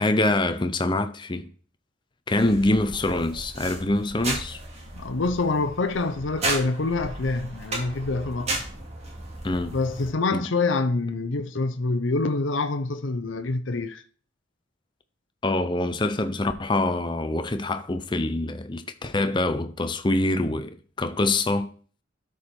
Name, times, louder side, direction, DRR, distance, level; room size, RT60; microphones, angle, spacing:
voice 1, 0.0-1.5 2.3-4.6 9.4-9.8 10.3-10.5 15.4-21.7, left 2 dB, 25° left, 0.7 m, -25 dB
sound 1, 2.4-10.1, right 2 dB, 35° right, 2.5 m, -34 dB
voice 2, 4.9-8.5 9.7-14.0, left 3 dB, 85° left, 0.8 m, -26 dB
12.5 x 4.9 x 4.4 m
head